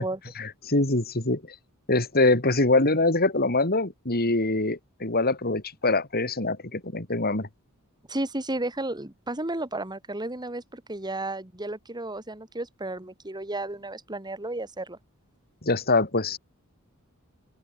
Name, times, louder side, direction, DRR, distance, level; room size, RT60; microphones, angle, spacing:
voice 1, 0.4-1.4 1.9-7.5 15.6-16.4, left 2 dB, 45° left, 4.0 m, -24 dB
voice 2, 8.1-15.0, right 2 dB, 20° right, 2.9 m, -33 dB
open air
head